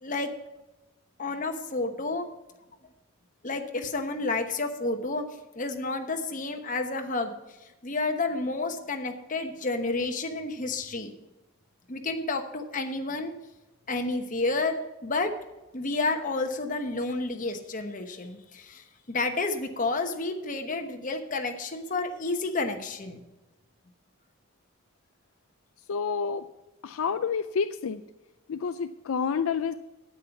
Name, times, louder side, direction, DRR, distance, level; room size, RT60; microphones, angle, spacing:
voice 1, 0.0-0.3 1.2-2.3 3.4-5.2 5.5-7.3 7.8-11.1 11.9-13.3 13.9-15.3 15.7-23.2, left 3 dB, 35° left, 5 dB, 1.1 m, -30 dB
voice 2, 25.9-26.5 26.8-28.0 28.5-29.7, left 6 dB, 70° left, 10 dB, 0.4 m, -29 dB
9.3 x 8.6 x 5.9 m, 1.0 s
head